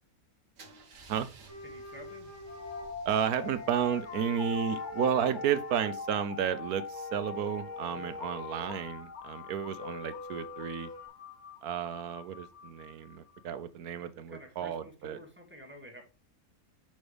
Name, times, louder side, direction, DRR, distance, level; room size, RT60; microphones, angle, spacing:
Car / Engine starting / Idling, 0.6-6.4, right 4 dB, 60° right, 1.4 m, -57 dB
sound 1, 1.5-3.6 3.9-6.0 6.8-8.8 9.8-11.1, left 1 dB, 75° left, 3.5 m, -46 dB
voice 1, 1.6-2.3 14.3-16.0, equal, 10° right, 1.9 m, -50 dB
sound 2, 2.5-13.4, left 5 dB, 40° left, 0.7 m, -42 dB
voice 2, 3.1-10.9 11.6-15.2, right 9 dB, 80° right, 1.3 m, -32 dB
6.4 x 6.0 x 3.3 m
omnidirectional pair, 1.6 m